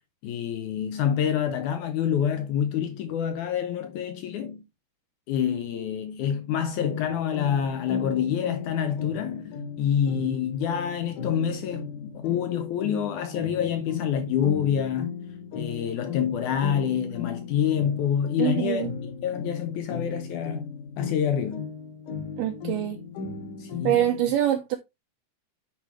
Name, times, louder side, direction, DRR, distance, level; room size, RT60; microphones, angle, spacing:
voice 1, 0.2-4.6 5.3-15.2 15.6-18.9 19.2-20.7 21.0-21.7 23.6-24.0, left 8 dB, 80° left, 1.7 m, -27 dB
sound 1, 6.8-24.2, left 5 dB, 60° left, 2.6 m, -36 dB
voice 2, 18.4-19.0 22.4-23.1 23.8-24.8, right 11 dB, 75° right, 2.2 m, -25 dB
9.8 x 5.0 x 3.1 m
omnidirectional pair, 4.4 m